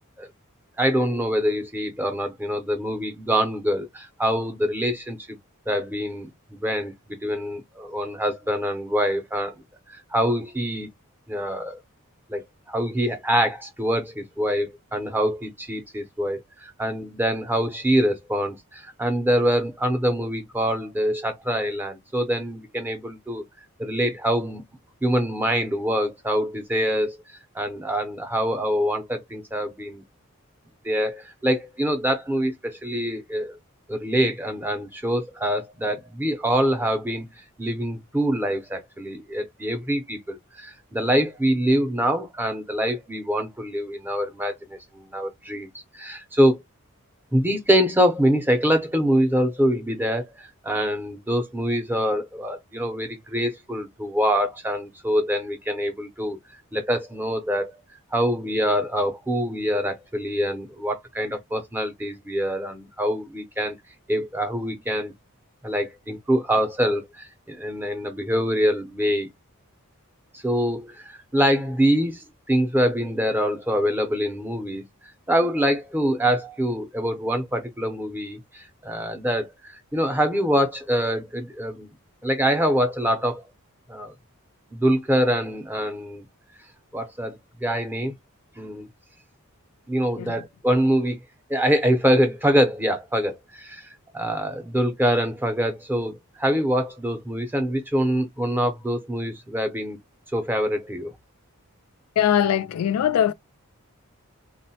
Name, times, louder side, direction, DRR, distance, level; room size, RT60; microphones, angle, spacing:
voice 1, 0.8-5.2 5.7-9.5 9.9-10.9 11.3-11.8 12.3-23.4 23.8-24.6 25.0-30.0 30.8-33.5 33.9-46.6 47.3-56.4 56.7-57.8 58.1-63.7 64.1-65.1 65.6-69.3 70.3-74.8 75.3-81.9 82.2-83.4 83.9-84.1 84.7-86.2 86.9-88.1 88.6-88.9 89.9-91.2 91.5-100.0 100.3-101.1, equal, 10° right, 0.5 m, -25 dB
voice 2, 102.2-103.3, left 9 dB, 85° left, 0.3 m, -21 dB
3.7 x 2.1 x 2.7 m
head